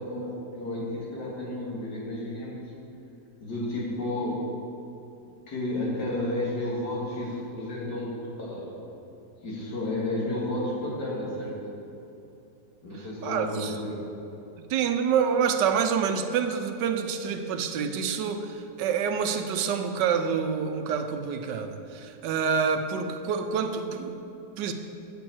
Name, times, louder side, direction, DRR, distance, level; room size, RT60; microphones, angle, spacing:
voice 1, 0.0-2.6 3.4-4.4 5.5-8.8 9.4-11.6 12.8-14.0, left 1 dB, 70° left, -4 dB, 2.5 m, -32 dB
voice 2, 13.2-13.7 14.7-24.2 24.6-24.7, right 6 dB, 80° right, 7 dB, 1.3 m, -27 dB
8.5 x 5.2 x 7.6 m, 2.9 s
omnidirectional pair, 1.9 m